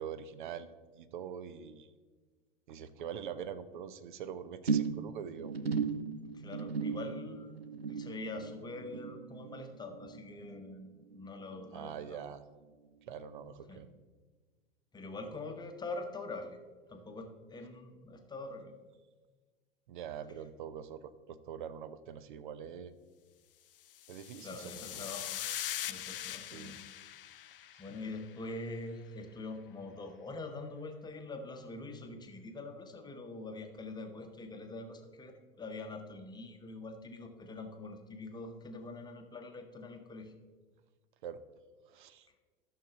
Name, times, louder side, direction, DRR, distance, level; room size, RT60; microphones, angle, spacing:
voice 1, 0.0-1.9 2.7-5.5 11.7-12.4 13.1-13.9 19.9-22.9 24.1-25.0 26.5-26.7 27.9-28.0 41.2-41.4 41.9-42.3, right 8 dB, 55° right, 13 dB, 0.7 m, -44 dB
sound 1, 4.7-11.3 11.5-12.0 12.3-12.4, right 5 dB, 90° right, 0.5 m, -37 dB
voice 2, 6.3-7.6 7.9-12.2 13.7-13.8 14.9-16.6 16.9-18.7 24.4-25.4 25.9-26.8 27.6-40.3, left 2 dB, 15° left, 5 dB, 0.9 m, -44 dB
sound 2, 23.9-28.4, left 11 dB, 65° left, 0.5 m, -42 dB
13.0 x 6.4 x 3.8 m, 1.4 s
figure-of-eight pair, 85°, 30 cm